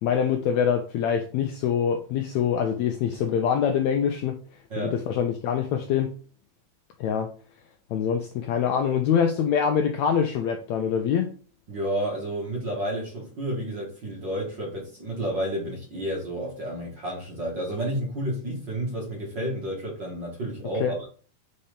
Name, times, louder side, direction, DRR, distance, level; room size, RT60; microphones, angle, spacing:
voice 1, 0.0-4.4 4.8-6.1 7.0-7.3 7.9-11.3 20.8-20.9, left 8 dB, 85° left, 1.6 m, -24 dB
voice 2, 11.7-21.1, right 1 dB, 40° right, 1.9 m, -31 dB
5.4 x 4.3 x 5.1 m
omnidirectional pair, 3.8 m